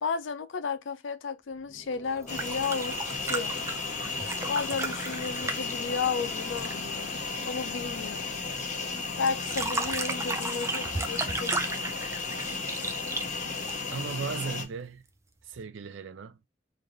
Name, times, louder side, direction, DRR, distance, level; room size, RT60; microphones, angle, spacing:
voice 1, 0.0-3.0 3.2-3.5 4.5-7.1 7.4-8.4 9.2-11.5, left 5 dB, 80° left, 0.5 m, -33 dB
sound 1, 1.4-7.1, left 4 dB, 10° left, 1.1 m, -49 dB
sound 2, 2.2-6.8 9.3-14.1 15.5-15.6, right 3 dB, 15° right, 0.4 m, -34 dB
sound 3, 2.3-14.6, left 4 dB, 40° left, 0.8 m, -34 dB
voice 2, 13.9-15.0 15.4-16.4, right 5 dB, 80° right, 0.5 m, -36 dB
3.2 x 2.5 x 3.8 m
head